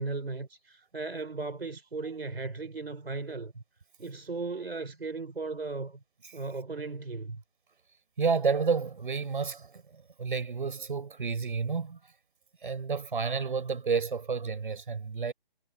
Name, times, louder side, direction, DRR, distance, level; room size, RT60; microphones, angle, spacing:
voice 1, 0.0-3.6 4.0-6.0 6.3-7.4, right 3 dB, 90° right, 3.9 m, -36 dB
voice 2, 8.2-12.1 12.6-15.3, right 5 dB, 60° right, 6.5 m, -30 dB
figure-of-eight pair, 160°, 29 cm